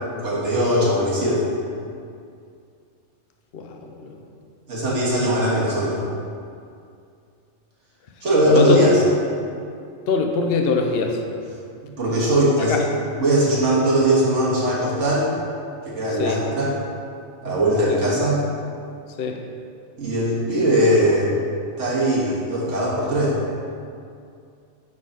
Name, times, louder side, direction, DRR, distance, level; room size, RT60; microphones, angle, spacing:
voice 1, 0.2-1.5 4.7-6.0 8.2-9.0 11.8-12.8 13.2-15.3 15.8-16.8 17.4-18.4 20.0-21.3 21.8-23.4, right 1 dB, 70° right, -6 dB, 2.0 m, -20 dB
voice 2, 3.5-4.2 8.4-8.8 10.1-11.2 12.6-12.8 16.2-16.4 17.9-18.0 19.2-19.4, left 4 dB, 55° left, 3 dB, 0.8 m, -23 dB
9.7 x 4.1 x 4.0 m, 2.4 s
omnidirectional pair, 1.3 m